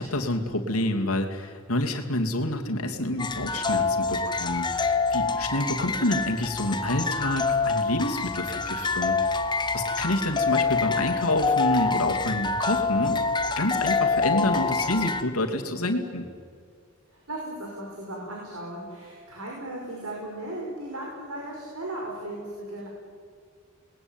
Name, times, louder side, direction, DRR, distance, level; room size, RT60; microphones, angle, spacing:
voice 1, 0.0-9.3 9.7-13.2 13.6-16.2, left 1 dB, 85° left, 3 dB, 2.8 m, -28 dB
sound 1, 3.2-15.2, left 4 dB, 20° left, 1.2 m, -26 dB
voice 2, 17.1-22.9, right 1 dB, 85° right, -1 dB, 5.5 m, -36 dB
28.5 x 20.5 x 9.1 m, 2.2 s
head